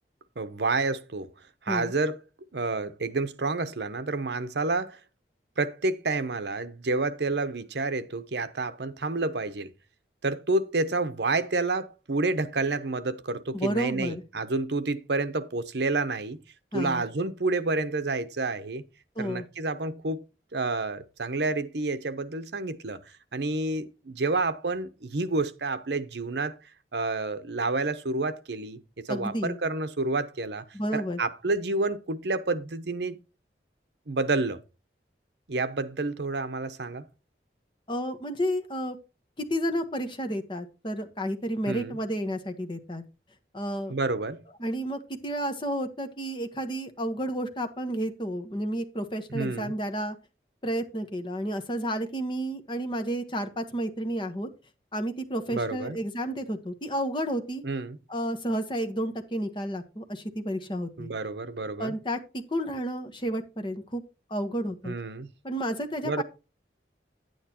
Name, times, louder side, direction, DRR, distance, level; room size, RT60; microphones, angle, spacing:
voice 1, 0.4-1.3 1.6-2.2 2.5-5.0 5.6-9.7 10.2-16.4 16.7-18.8 19.2-20.2 20.5-23.0 23.3-26.6 26.9-30.6 30.9-33.2 34.1-34.6 35.5-37.1 41.7-42.0 43.9-44.4 49.3-49.7 55.5-56.0 57.6-58.0 61.0-61.9 64.8-65.3 66.0-66.2, right 3 dB, 75° right, 0.9 m, -29 dB
voice 2, 13.5-14.2 16.7-17.0 19.2-19.4 29.1-29.6 30.7-31.2 37.9-39.0 39.4-43.0 43.5-43.9 44.6-50.2 50.6-54.5 54.9-57.6 58.1-61.1 61.8-62.2 62.5-64.0 64.3-64.9 65.4-66.2, equal, 25° left, 1.2 m, -31 dB
10.0 x 9.1 x 2.9 m
head